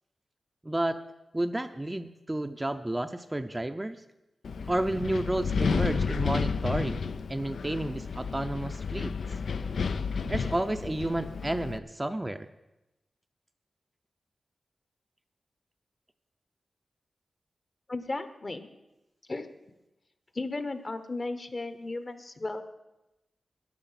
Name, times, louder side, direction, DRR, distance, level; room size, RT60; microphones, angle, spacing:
voice 1, 0.6-1.0 1.3-4.0 4.7-7.0 7.3-9.1 10.3-12.5, right 1 dB, 15° right, 8 dB, 0.5 m, -31 dB
Wind, 4.4-11.8, left 5 dB, 80° left, 0.5 m, -31 dB
voice 2, 17.9-18.7 19.3-19.5 20.3-22.6, left 2 dB, 35° left, 10 dB, 1.1 m, -35 dB
13.5 x 10.0 x 5.8 m, 0.96 s
wide cardioid pair, 95°, 0 cm